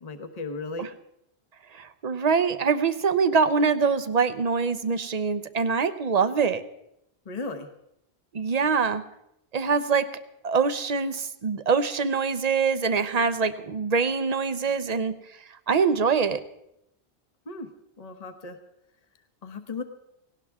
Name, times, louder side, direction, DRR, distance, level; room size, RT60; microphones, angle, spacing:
voice 1, 0.0-0.9 7.3-7.7 17.5-17.7 18.0-18.6 19.4-19.8, left 3 dB, 40° left, 7 dB, 1.1 m, -35 dB
voice 2, 1.7-6.6 8.3-9.0 9.5-10.1 10.4-15.1 15.7-16.4, right 5 dB, 40° right, 12 dB, 0.8 m, -24 dB
18.0 x 17.5 x 3.6 m, 0.80 s
omnidirectional pair, 1.1 m